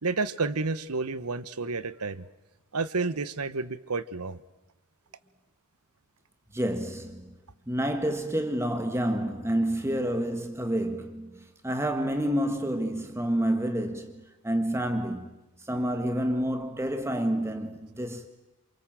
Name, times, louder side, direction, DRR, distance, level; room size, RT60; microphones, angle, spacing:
voice 1, 0.0-2.2 2.7-4.4, right 4 dB, 85° right, 1.2 m, -30 dB
voice 2, 6.5-7.3 7.7-15.3 15.6-18.3, right 1 dB, 10° right, 1.6 m, -29 dB
28.0 x 27.0 x 7.7 m
head